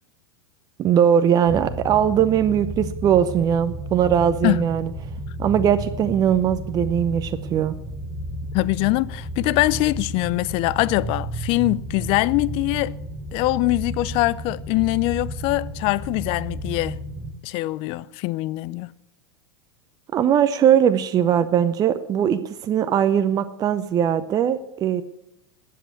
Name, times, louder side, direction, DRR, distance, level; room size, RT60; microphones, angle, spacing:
voice 1, 0.8-4.9 5.4-7.8 20.1-25.0, right 9 dB, 30° right, 0.6 m, -20 dB
sound 1, 1.5-17.3, right 1 dB, 5° right, 3.3 m, -33 dB
voice 2, 8.5-12.9 13.3-17.0 17.4-18.9, left 20 dB, 45° left, 0.4 m, -23 dB
13.0 x 8.5 x 8.2 m
hypercardioid pair, 95°, 13 cm